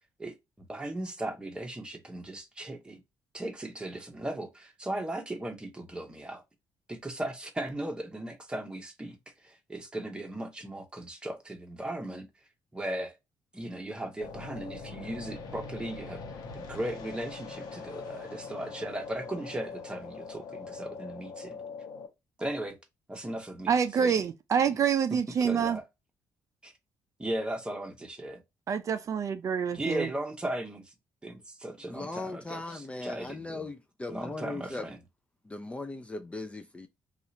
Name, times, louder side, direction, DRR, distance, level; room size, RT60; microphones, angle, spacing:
voice 1, 0.2-3.0 3.3-6.4 6.9-12.3 12.7-13.2 13.5-16.2 16.5-21.6 22.4-22.8 23.1-24.2 25.1-25.8 26.6-26.7 27.2-28.4 29.7-30.9 31.2-33.7 34.1-35.0, right 1 dB, 15° right, 1.0 m, -37 dB
sound 1, 14.2-22.1, left 4 dB, 70° left, 0.9 m, -42 dB
voice 2, 23.7-25.8 28.7-30.1, right 7 dB, 50° right, 0.4 m, -27 dB
voice 3, 31.8-34.9 35.4-36.9, left 2 dB, 15° left, 0.4 m, -38 dB
2.8 x 2.4 x 4.1 m
cardioid pair, 100°, 7 cm